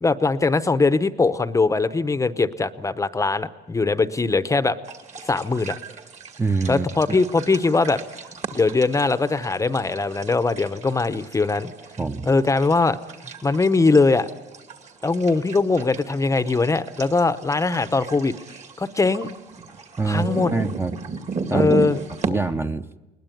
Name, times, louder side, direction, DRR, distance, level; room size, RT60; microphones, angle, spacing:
voice 1, 0.0-4.8 5.2-5.8 6.7-8.0 8.5-11.7 12.3-13.0 13.4-14.3 15.0-18.3 18.8-19.3 20.0-20.5 21.5-22.0 22.3-22.4, left 3 dB, 20° left, 13 dB, 0.8 m, -21 dB
sound 1, 4.8-22.3, right 4 dB, 45° right, 2.3 m, -35 dB
voice 2, 6.4-7.2 12.0-12.4 20.0-20.9 21.5-21.8 22.3-22.9, right 3 dB, 15° right, 8 dB, 0.7 m, -25 dB
21.5 x 19.5 x 9.2 m, 1.0 s
cardioid pair, 110°, 17 cm